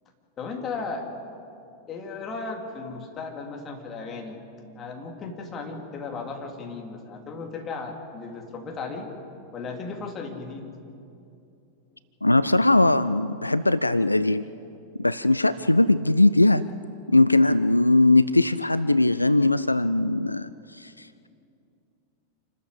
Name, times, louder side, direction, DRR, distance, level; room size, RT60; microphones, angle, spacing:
voice 1, 0.4-1.1 1.9-4.4 4.7-9.1 9.5-10.7, left 4 dB, 25° left, 2 dB, 3.3 m, -35 dB
voice 2, 12.2-14.5 15.0-16.6 17.1-21.3, left 2 dB, 85° left, 15 dB, 0.4 m, -20 dB
27.5 x 13.0 x 8.3 m, 2.6 s
figure-of-eight pair, 90°, 0 cm